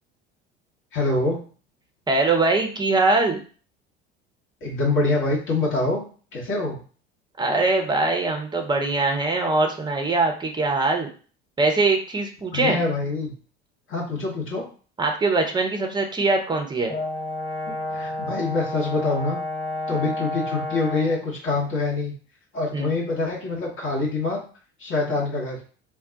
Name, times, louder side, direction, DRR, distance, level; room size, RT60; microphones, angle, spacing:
voice 1, 0.9-1.4 4.6-6.0 6.3-6.8 12.5-13.3 13.9-14.6 17.7-19.4 19.9-22.1 22.5-24.4 24.8-25.6, left 3 dB, 40° left, -4 dB, 1.1 m, -25 dB
voice 2, 2.1-3.4 7.4-11.1 11.6-12.8 15.0-16.9 22.7-22.9, right 3 dB, 15° right, 3 dB, 0.7 m, -22 dB
Brass instrument, 16.9-21.3, left 1 dB, 90° left, 0.9 m, -30 dB
2.3 x 2.2 x 3.8 m, 0.40 s
figure-of-eight pair, 60°, 31 cm